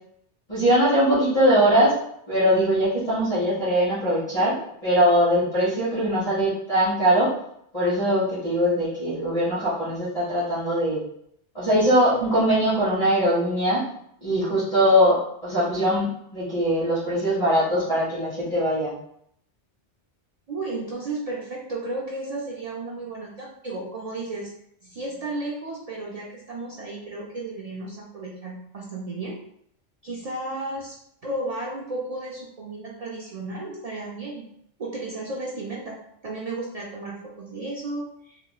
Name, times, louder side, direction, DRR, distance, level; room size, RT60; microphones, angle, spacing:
voice 1, 0.5-2.0 2.3-7.3 7.7-11.0 11.5-13.8 14.2-19.0, equal, 35° left, -12 dB, 1.2 m, -21 dB
voice 2, 20.5-24.5 24.8-29.4 30.0-34.5 34.8-38.4, right 2 dB, 60° right, -3 dB, 0.4 m, -33 dB
3.2 x 2.8 x 2.3 m, 0.72 s
omnidirectional pair, 1.2 m